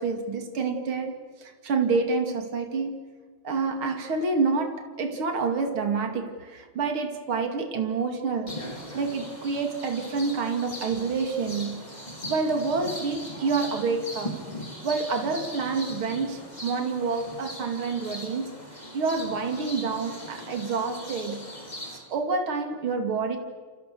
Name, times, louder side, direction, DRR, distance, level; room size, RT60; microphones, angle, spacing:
voice 1, 0.0-2.9 3.4-8.5 8.9-11.9 12.3-14.4 14.8-18.5 18.9-21.5 21.9-23.4, right 4 dB, 75° right, 5 dB, 3.4 m, -28 dB
sound 1, 8.5-22.0, left 1 dB, 20° left, 5.5 m, -39 dB
29.5 x 28.5 x 7.0 m, 1.5 s
omnidirectional pair, 2.4 m